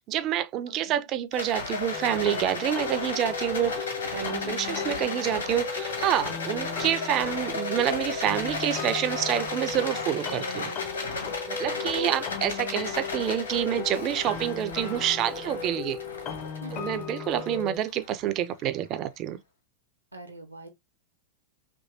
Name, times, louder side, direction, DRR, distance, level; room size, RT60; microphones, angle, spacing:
voice 1, 0.0-10.7 11.5-16.0 16.7-19.4, right 11 dB, 35° right, 0.3 m, -28 dB
Rattle, 1.3-18.7, left 3 dB, 75° left, 1.3 m, -35 dB
sound 1, 1.9-17.8, left 7 dB, 35° left, 0.4 m, -37 dB
voice 2, 4.4-4.9 11.9-12.1 16.6-17.0 20.1-20.7, right 2 dB, 80° right, 0.7 m, -40 dB
3.0 x 2.7 x 2.4 m
figure-of-eight pair, 90°, 0 cm